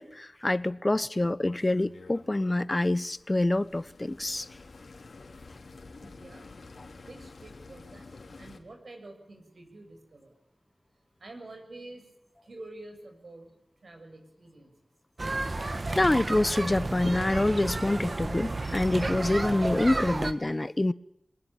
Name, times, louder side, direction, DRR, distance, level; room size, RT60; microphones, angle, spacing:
voice 1, 0.0-4.4 16.0-20.9, left 2 dB, 25° left, 0.9 m, -26 dB
sound 1, 1.4-8.6, left 3 dB, 80° left, 3.2 m, -50 dB
voice 2, 6.0-6.4 7.0-8.1 8.4-10.3 11.2-12.0 12.5-13.5 13.8-14.7, right 2 dB, 70° right, 7.1 m, -47 dB
sound 2, 15.2-20.3, right 2 dB, 45° right, 1.9 m, -32 dB
24.0 x 20.5 x 8.8 m
wide cardioid pair, 80°, 0 cm